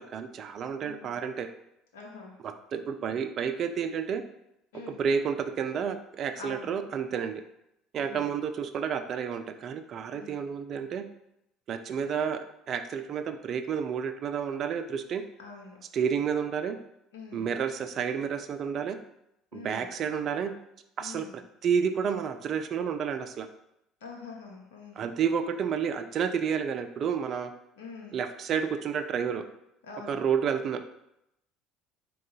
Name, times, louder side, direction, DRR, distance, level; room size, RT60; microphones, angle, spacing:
voice 1, 0.0-1.5 2.4-4.2 4.9-7.4 7.9-11.0 11.7-15.2 15.9-16.8 17.3-19.0 19.5-20.5 21.0-23.5 25.0-27.5 28.1-29.4 30.1-30.8, right 7 dB, 50° right, 8 dB, 0.4 m, -30 dB
voice 2, 0.8-1.2 1.9-2.3 4.7-5.0 6.4-6.7 8.0-8.3 10.1-10.4 15.4-15.8 17.1-17.5 19.5-19.9 21.0-21.4 24.0-25.1 27.8-28.2 29.8-30.2, left 4 dB, 80° left, -1 dB, 0.7 m, -45 dB
3.7 x 2.3 x 3.9 m, 0.82 s
hypercardioid pair, 65°, 0 cm